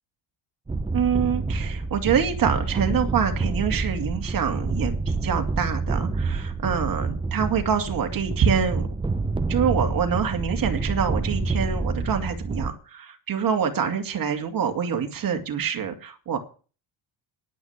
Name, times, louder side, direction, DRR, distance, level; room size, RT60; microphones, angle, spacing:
sound 1, 0.7-12.7, right 3 dB, 10° right, 0.6 m, -28 dB
voice 1, 0.9-8.9 9.5-16.4, right 7 dB, 40° right, 4 dB, 2.6 m, -25 dB
10.5 x 9.8 x 7.3 m, 0.37 s
cardioid pair, 125°, 50 cm